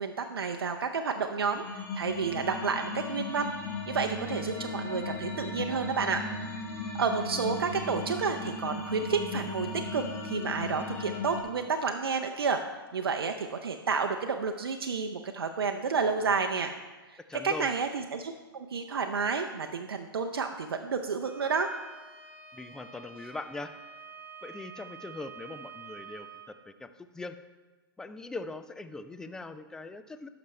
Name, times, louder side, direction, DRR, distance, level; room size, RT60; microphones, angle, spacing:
voice 1, 0.0-3.5 3.9-6.2 7.0-12.6 12.9-16.7 17.4-21.7, right 5 dB, 85° right, 5 dB, 0.5 m, -30 dB
sound 1, 1.5-11.4, left 2 dB, 20° left, 1.5 m, -36 dB
voice 2, 17.3-17.7 22.5-23.7 24.4-27.4 28.0-30.3, left 3 dB, 5° left, 10 dB, 0.3 m, -41 dB
Bowed string instrument, 21.2-26.5, right 6 dB, 15° right, 1.1 m, -48 dB
11.5 x 5.9 x 3.2 m, 1.2 s
hypercardioid pair, 125°, 12 cm